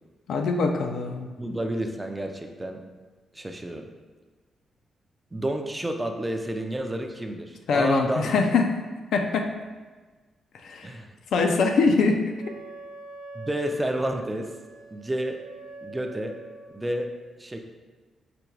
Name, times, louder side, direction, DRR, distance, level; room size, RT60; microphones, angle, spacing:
voice 1, 0.3-1.3 7.7-8.7 9.1-9.5 10.6-10.9 11.3-12.3, left 4 dB, 75° left, 4 dB, 0.5 m, -23 dB
voice 2, 1.4-2.8 3.3-3.9 5.3-8.3 10.8-11.1 13.3-14.5 14.9-15.4 15.8-16.4 16.7-17.1 17.4-17.6, right 1 dB, 15° right, 4 dB, 0.4 m, -30 dB
Wind instrument woodwind instrument, 12.4-16.9, right 2 dB, 90° right, 0.7 m, -44 dB
5.0 x 2.3 x 4.5 m, 1.3 s
cardioid pair, 115°, 0 cm